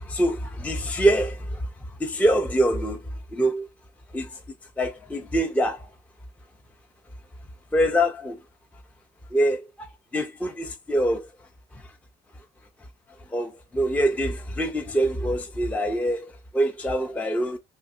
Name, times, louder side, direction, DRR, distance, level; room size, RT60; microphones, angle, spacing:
voice 1, 0.0-1.7 2.0-3.7 4.1-4.4 4.8-5.9 7.7-8.4 9.3-9.9 10.1-11.3 11.7-11.9 13.3-17.6, right 1 dB, 10° left, 0.4 m, -25 dB
2.6 x 2.6 x 2.4 m
cardioid pair, 110°, 17 cm